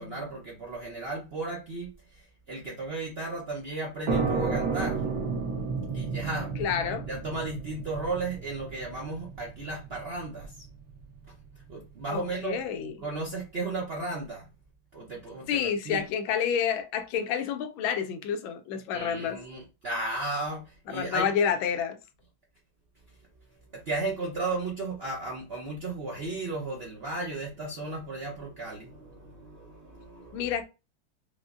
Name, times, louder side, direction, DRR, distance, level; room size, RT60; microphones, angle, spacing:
voice 1, 0.0-5.0 5.9-6.5 7.1-10.6 11.7-12.6 13.0-14.5 14.9-16.0 18.9-21.3 23.7-30.5, right 2 dB, 90° right, 0.5 m, -35 dB
sound 1, 4.1-11.5, right 4 dB, 65° right, 1.3 m, -32 dB
voice 2, 6.6-7.1 12.1-12.9 15.5-19.4 20.9-22.0 30.3-30.6, left 7 dB, 80° left, 1.3 m, -29 dB
4.9 x 2.0 x 2.4 m
omnidirectional pair, 2.2 m